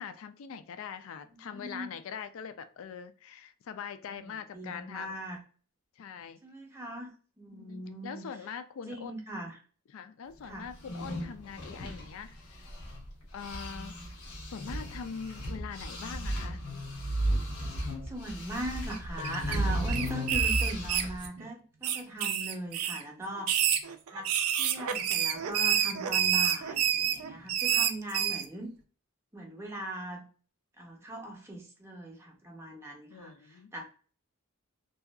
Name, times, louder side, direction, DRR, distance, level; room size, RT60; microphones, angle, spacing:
voice 1, 0.0-5.1 6.0-6.4 7.5-9.1 9.9-12.7 13.3-14.0 14.4-16.6 33.1-33.7, left 7 dB, 65° left, 11 dB, 0.3 m, -42 dB
voice 2, 1.4-1.9 4.1-4.3 4.5-5.4 6.4-8.3 8.9-9.6 10.4-10.7 18.0-23.5 24.1-24.3 24.6-28.7 29.3-30.3 30.8-33.8, right 1 dB, 10° right, 0 dB, 0.6 m, -40 dB
sound 1, 10.7-13.1 13.4-21.3, right 1 dB, 85° left, 0.8 m, -34 dB
sound 2, 18.8-19.6 19.9-21.5 21.8-23.0 23.4-28.4, right 9 dB, 80° right, 0.4 m, -28 dB
2.7 x 2.3 x 2.2 m, 0.40 s
head